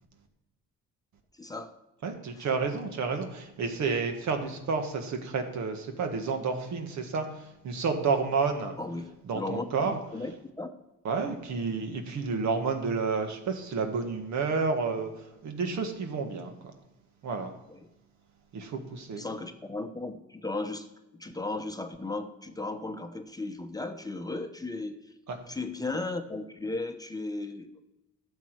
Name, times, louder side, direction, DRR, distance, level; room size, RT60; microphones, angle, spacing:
voice 1, 1.3-1.8 2.4-2.5 8.8-10.3 10.6-10.7 17.7-17.9 19.2-20.9 21.1-25.1 25.5-27.7, left 2 dB, 10° left, 6 dB, 0.8 m, -36 dB
voice 2, 2.0-8.7 9.3-10.0 11.0-16.5 17.2-17.5 18.5-19.2 25.3-25.4, right 4 dB, 70° right, 5 dB, 1.6 m, -30 dB
12.0 x 7.2 x 4.7 m, 0.95 s
cardioid pair, 90°, 30 cm